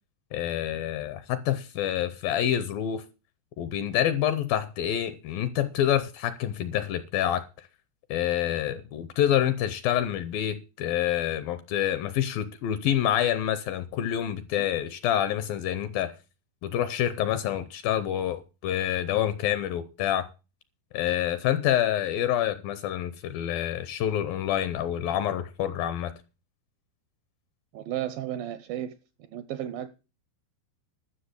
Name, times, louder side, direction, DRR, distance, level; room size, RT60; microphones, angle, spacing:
voice 1, 0.3-3.1 3.6-7.7 8.1-16.1 16.6-20.3 20.9-26.1, left 11 dB, 75° left, 2.2 m, -27 dB
voice 2, 27.7-29.0 29.3-30.0, right 11 dB, 80° right, 2.1 m, -34 dB
12.5 x 6.5 x 8.1 m
omnidirectional pair, 4.8 m